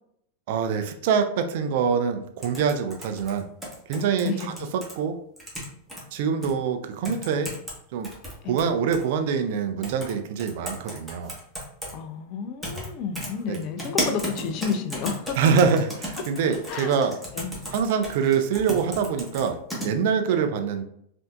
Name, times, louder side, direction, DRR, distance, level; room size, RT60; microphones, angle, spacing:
voice 1, 0.5-3.5 3.9-4.5 5.0-5.2 6.1-7.5 7.9-8.1 8.5-11.3 13.5-13.6 15.4-17.1 17.7-19.6 19.8-20.8, right 6 dB, 50° right, 6 dB, 0.5 m, -24 dB
sound 1, 2.4-4.9 5.4-6.0 6.4-6.5 7.0-7.8 8.0-9.0 9.8-10.1 10.4-11.9 12.6-12.9 13.1-19.9, equal, ahead, 1.3 m, -34 dB
voice 2, 11.9-15.4 16.4-16.9 17.3-17.5 20.3-20.5, left 6 dB, 40° left, 9 dB, 0.4 m, -31 dB
5.4 x 2.6 x 2.4 m, 0.70 s
figure-of-eight pair, 90°, 0 cm